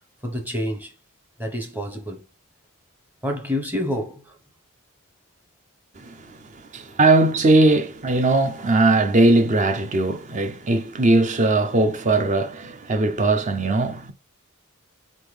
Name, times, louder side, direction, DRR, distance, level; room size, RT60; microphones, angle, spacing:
voice 1, 0.2-1.0 1.4-2.2 3.2-4.4, left 1 dB, 10° right, 0.9 m, -28 dB
voice 2, 6.0-14.1, right 2 dB, 35° right, 0.5 m, -20 dB
4.0 x 3.7 x 3.2 m
head